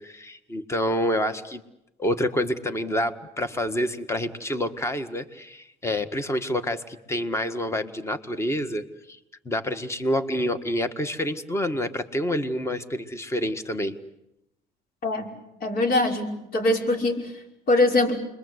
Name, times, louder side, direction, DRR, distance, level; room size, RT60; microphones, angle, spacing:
voice 1, 0.0-1.6 2.0-9.2 9.4-14.0, equal, 15° left, 10 dB, 1.7 m, -28 dB
voice 2, 15.6-17.2 17.7-18.1, left 2 dB, 60° left, 2 dB, 5.6 m, -22 dB
29.0 x 22.5 x 8.2 m, 0.85 s
cardioid pair, 110°, 17 cm